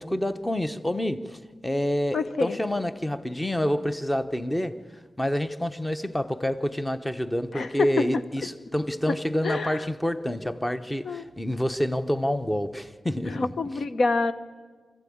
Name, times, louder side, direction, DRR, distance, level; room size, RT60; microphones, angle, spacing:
voice 1, 0.0-4.8 5.2-13.5, equal, 10° left, 0.9 m, -28 dB
voice 2, 2.1-2.6 7.5-8.2 9.4-9.8 11.0-11.3 13.3-14.3, left 3 dB, 55° left, 1.0 m, -27 dB
25.5 x 15.0 x 8.6 m
wide cardioid pair, 140°, 0 cm